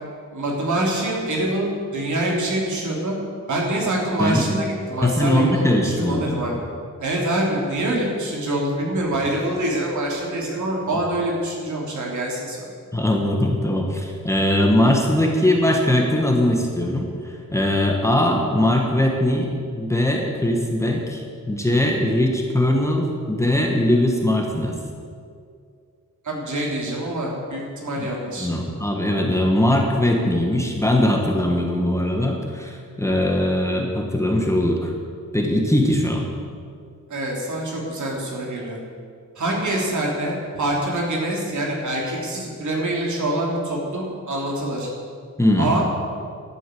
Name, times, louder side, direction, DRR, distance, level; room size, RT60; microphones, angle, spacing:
voice 1, 0.3-3.1 3.5-6.5 7.0-12.6 26.2-28.6 37.1-38.8 39.4-44.9 45.6-45.8, right 1 dB, 65° right, -2 dB, 3.1 m, -25 dB
voice 2, 5.0-6.6 12.9-24.8 28.0-28.1 28.4-34.9 35.3-36.3 45.4-45.7, left 1 dB, 10° left, 0 dB, 1.3 m, -21 dB
12.0 x 8.3 x 7.7 m, 2.2 s
wide cardioid pair, 145°, 31 cm